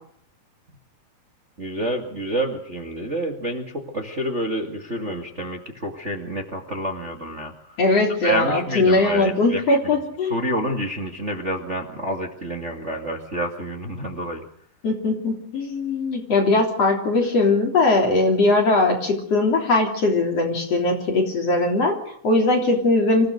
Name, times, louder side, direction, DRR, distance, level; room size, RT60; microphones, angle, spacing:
voice 1, 1.6-7.8 8.2-9.8 10.3-14.4, right 1 dB, 25° right, 2 dB, 2.0 m, -28 dB
voice 2, 7.8-10.3 14.8-23.3, left 2 dB, 45° left, 1 dB, 4.4 m, -20 dB
26.5 x 16.5 x 6.6 m, 0.63 s
omnidirectional pair, 4.0 m